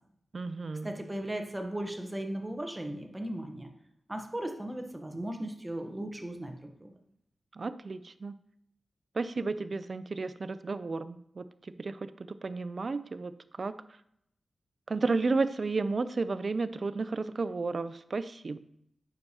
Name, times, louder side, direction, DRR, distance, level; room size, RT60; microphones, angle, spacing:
voice 1, 0.3-0.9 7.5-8.3 9.1-13.3 13.6-13.7 14.9-18.6, right 3 dB, 55° right, 13 dB, 0.4 m, -32 dB
voice 2, 0.8-3.7 4.1-6.9, right 1 dB, 15° right, 4 dB, 1.0 m, -37 dB
9.2 x 6.5 x 2.9 m, 0.74 s
cardioid pair, 65°, 0 cm